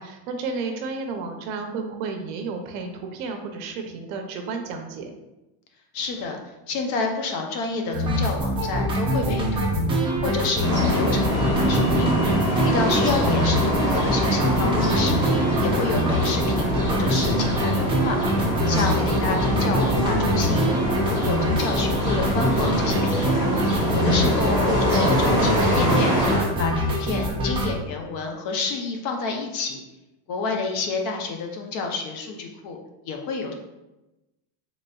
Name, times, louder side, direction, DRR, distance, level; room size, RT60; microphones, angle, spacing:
voice 1, 0.0-5.1 18.6-19.2, right 4 dB, 65° right, 4 dB, 0.7 m, -32 dB
voice 2, 5.9-9.8 10.2-12.1 12.6-18.2 18.7-23.5 23.9-26.1 26.6-29.8 30.3-32.8 33.0-33.5, left 4 dB, 50° left, 3 dB, 0.7 m, -29 dB
sound 1, 7.9-27.7, equal, 10° right, 0.4 m, -24 dB
sound 2, 10.6-26.4, equal, 10° left, 1.0 m, -24 dB
4.0 x 3.6 x 2.3 m, 0.99 s
cardioid pair, 155°, 46 cm